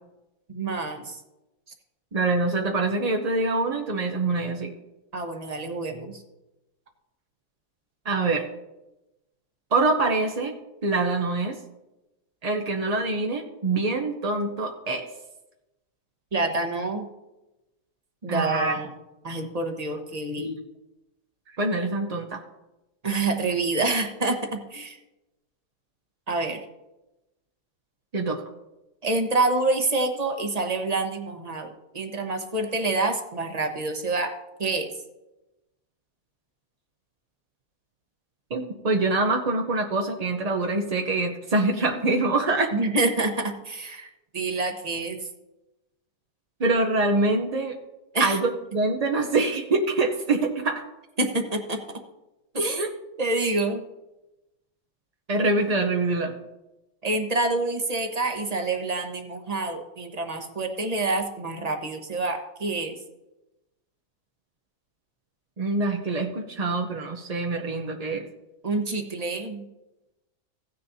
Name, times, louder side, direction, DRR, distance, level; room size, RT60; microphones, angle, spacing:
voice 1, 0.5-1.2 5.1-6.2 16.3-17.1 18.2-18.9 19.2-20.5 23.0-25.0 26.3-26.6 29.0-34.3 34.6-34.9 42.7-45.3 48.1-48.4 51.2-51.8 52.5-52.9 53.2-53.8 57.0-63.0 68.6-69.6, right 2 dB, 25° right, 4 dB, 1.0 m, -27 dB
voice 2, 2.1-4.7 8.0-8.5 9.7-10.5 10.8-11.6 12.4-15.1 18.3-18.8 20.4-20.6 21.6-22.4 28.1-28.4 38.5-42.7 46.6-47.8 48.2-48.5 48.7-50.8 52.8-52.9 55.3-56.3 65.6-68.2, right 3 dB, 45° right, 2 dB, 0.5 m, -25 dB
16.0 x 9.6 x 2.7 m, 0.97 s
omnidirectional pair, 1.8 m